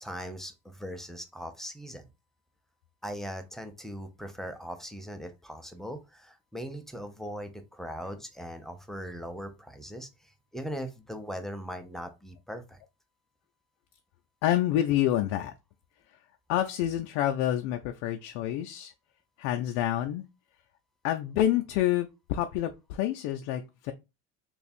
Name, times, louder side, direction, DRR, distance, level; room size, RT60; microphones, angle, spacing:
voice 1, 0.0-2.1 3.0-12.8, equal, ahead, 0.5 m, -40 dB
voice 2, 14.4-15.5 16.5-18.9 19.4-20.2 21.0-23.9, left 12 dB, 75° left, 0.5 m, -28 dB
3.2 x 2.4 x 4.1 m
supercardioid pair, 105°, 35 cm